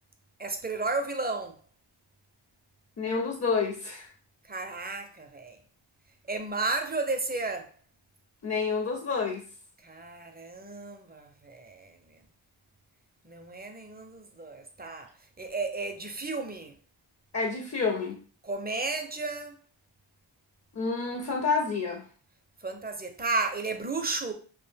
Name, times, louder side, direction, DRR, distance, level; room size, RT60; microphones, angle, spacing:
voice 1, 0.4-1.6 4.5-5.6 6.3-7.7 9.8-12.0 13.2-15.1 15.4-16.7 18.4-19.6 22.6-24.3, right 3 dB, 20° right, 0.4 m, -33 dB
voice 2, 3.0-4.1 8.4-9.4 17.3-18.2 20.7-22.0, left 4 dB, 35° left, 0.5 m, -29 dB
2.5 x 2.1 x 3.2 m
cardioid pair, 50°, 48 cm